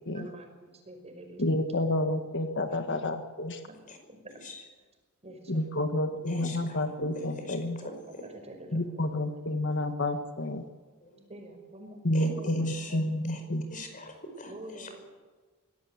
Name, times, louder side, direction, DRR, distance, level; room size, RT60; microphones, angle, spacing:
voice 1, 0.1-1.6 2.0-2.1 2.7-3.0 3.6-3.8 4.1-4.4 5.2-5.8 6.1-6.2 6.6-6.7 7.4-7.5 7.8-7.9 8.2-9.1 11.3-13.0 13.3-13.6 14.4-15.1, right 1 dB, 30° right, 4 dB, 5.6 m, -47 dB
voice 2, 1.4-3.6 5.5-7.8 8.7-10.7 12.0-13.7, left 1 dB, 60° left, 7 dB, 1.7 m, -29 dB
voice 3, 6.3-8.2 11.0-11.2 12.1-13.0 13.3-13.4 13.7-14.9, left 1 dB, 40° left, 6 dB, 5.3 m, -42 dB
24.5 x 17.5 x 8.2 m, 1.4 s
head